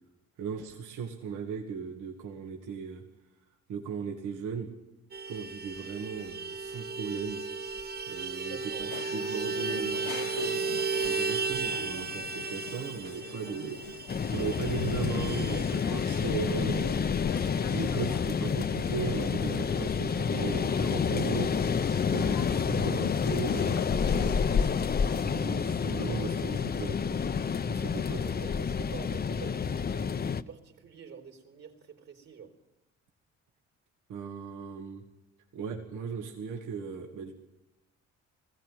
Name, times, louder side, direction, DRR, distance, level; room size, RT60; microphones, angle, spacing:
voice 1, 0.4-3.0 3.7-4.7 5.3-7.4 8.1-10.0 11.0-13.8 14.1-17.0 17.7-21.6 22.1-24.6 25.1-27.3 27.7-28.3 34.1-35.0 35.5-37.3, right 6 dB, 85° right, 3 dB, 2.3 m, -37 dB
Vehicle horn car horn honking, 5.1-19.0 19.3-19.4 19.7-19.9 20.2-20.9, right 4 dB, 30° right, 0.8 m, -35 dB
voice 2, 8.4-10.6 11.0-11.3 26.5-26.7 28.2-32.6, right 6 dB, 60° right, 1 dB, 4.0 m, -48 dB
sound 1, 8.8-24.7, left 13 dB, 70° left, 0.7 m, -42 dB
sound 2, 14.1-30.4, left 6 dB, 30° left, 0.7 m, -29 dB
19.5 x 16.0 x 9.4 m, 0.92 s
cardioid pair, 90°, 30 cm